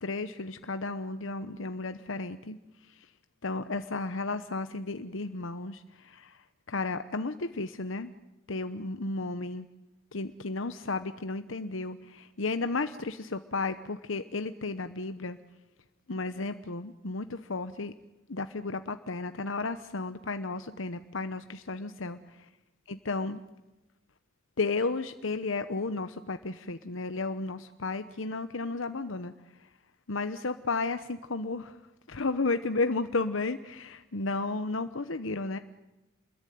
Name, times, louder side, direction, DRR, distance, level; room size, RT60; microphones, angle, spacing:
voice 1, 0.0-2.6 2.9-3.1 3.4-6.4 6.7-8.1 8.5-9.7 10.1-15.4 16.1-17.9 18.3-22.2 22.9-23.4 24.6-29.3 29.6-29.7 30.1-31.8 32.1-35.6, left 3 dB, 75° left, 10 dB, 1.0 m, -33 dB
29.0 x 21.5 x 9.4 m, 1.1 s
head